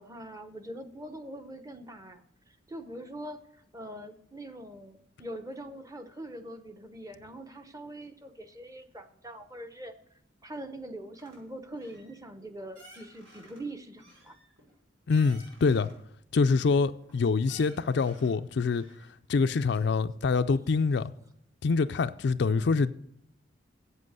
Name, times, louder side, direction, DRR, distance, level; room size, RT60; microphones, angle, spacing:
voice 1, 0.0-9.9 10.4-14.4 22.4-22.8, right 1 dB, 15° right, 0.7 m, -43 dB
sound 1, 11.1-11.4 11.8-12.1 12.7-13.6 14.0-16.0 16.5-17.1 17.5-18.3 18.7-19.4 19.7-19.8, right 1 dB, 80° right, 5.5 m, -55 dB
voice 2, 15.1-15.9 16.3-18.8 19.3-21.1 21.6-22.9, left 4 dB, 60° left, 0.4 m, -25 dB
8.1 x 7.6 x 8.0 m
head